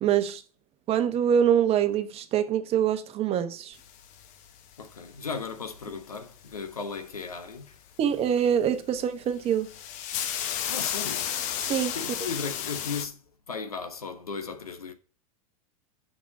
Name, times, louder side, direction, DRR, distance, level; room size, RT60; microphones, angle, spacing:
voice 1, 0.0-0.4 0.9-3.8 8.0-9.7 11.6-11.9, right 9 dB, 35° right, 1.0 m, -24 dB
sound 1, 3.8-4.9 6.1-6.6 8.8-9.0 9.3-13.1, left 10 dB, 40° left, 0.9 m, -32 dB
voice 2, 4.8-7.8 10.7-11.3 11.9-14.9, left 5 dB, 85° left, 1.2 m, -36 dB
7.0 x 6.1 x 4.8 m
figure-of-eight pair, 90°, 19 cm